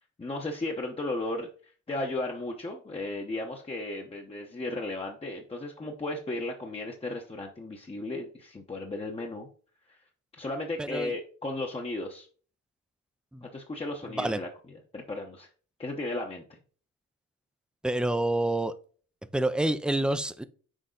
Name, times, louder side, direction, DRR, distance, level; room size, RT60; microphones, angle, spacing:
voice 1, 0.2-9.5 9.9-10.0 10.4-12.3 13.4-15.5 15.8-16.6, left 2 dB, 20° left, 0.9 m, -35 dB
voice 2, 10.8-11.1 13.3-13.4 14.2-14.4 17.8-18.7 19.3-20.4, right 1 dB, 5° right, 0.5 m, -27 dB
6.4 x 4.0 x 3.8 m
cardioid pair, 90°, 30 cm